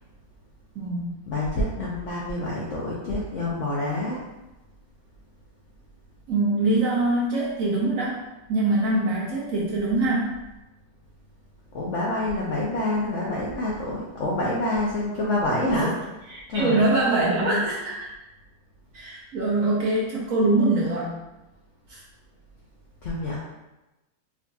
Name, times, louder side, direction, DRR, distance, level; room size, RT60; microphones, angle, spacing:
voice 1, 0.8-1.2 6.3-8.2 8.5-10.3 15.7-15.9 16.3-18.1 18.9-21.1 21.9-22.0, right 2 dB, 65° right, -5 dB, 0.9 m, -23 dB
voice 2, 1.3-4.2 11.7-15.9 16.5-16.8 17.2-17.6 23.0-23.4, left 2 dB, 70° left, -5 dB, 0.7 m, -27 dB
4.8 x 2.7 x 2.3 m, 1.0 s
omnidirectional pair, 1.9 m